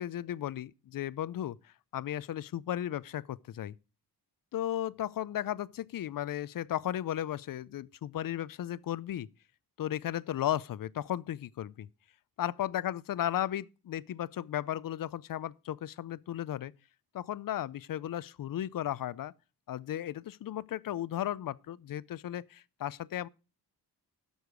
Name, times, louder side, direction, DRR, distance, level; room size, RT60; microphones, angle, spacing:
voice 1, 0.0-3.7 4.5-9.3 9.8-11.9 12.4-16.7 17.1-19.3 19.7-23.3, left 12 dB, 55° left, 0.5 m, -35 dB
12.0 x 6.4 x 4.9 m
wide cardioid pair, 110°, 41 cm